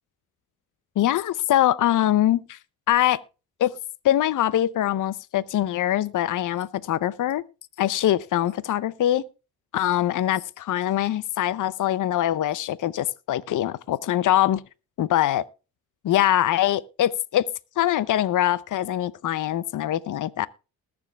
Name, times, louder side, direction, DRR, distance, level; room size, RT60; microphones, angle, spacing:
voice 1, 1.0-2.6 2.9-3.2 3.6-3.7 4.0-7.4 7.8-9.2 9.7-14.6 15.0-15.4 16.0-17.5 17.8-20.5, left 12 dB, 60° left, 0.7 m, -23 dB
20.5 x 7.0 x 3.5 m
cardioid pair, 65°, 35 cm